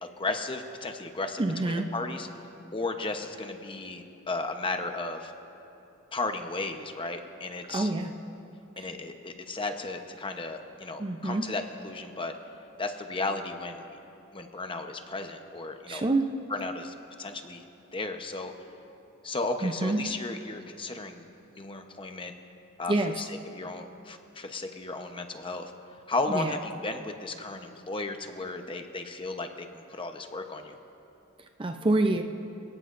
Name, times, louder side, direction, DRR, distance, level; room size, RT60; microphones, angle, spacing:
voice 1, 0.0-2.3 2.7-5.3 6.1-7.9 8.8-12.3 12.8-13.8 14.3-16.0 16.5-17.6 17.9-18.5 19.2-21.3 21.5-22.3 22.8-25.7 26.1-30.8, left 3 dB, 25° left, 5 dB, 0.9 m, -34 dB
voice 2, 1.4-1.9 7.7-8.1 8.8-8.9 11.0-11.5 15.9-16.3 19.6-20.1 22.9-23.1 26.3-26.5 31.6-32.2, right 2 dB, 25° right, 5 dB, 0.5 m, -27 dB
28.0 x 18.0 x 2.6 m, 2.9 s
head